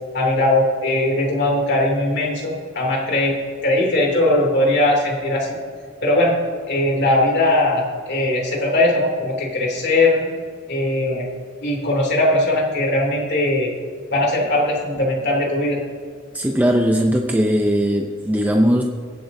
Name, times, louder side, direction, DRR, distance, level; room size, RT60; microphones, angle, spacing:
voice 1, 0.1-3.4 3.6-5.6 6.0-6.3 6.7-10.2 10.7-11.3 11.6-13.7 14.1-15.8, left 1 dB, 50° left, -2 dB, 2.7 m, -19 dB
voice 2, 16.3-18.8, equal, 10° right, 2 dB, 0.5 m, -18 dB
23.5 x 7.8 x 2.7 m, 2.1 s
head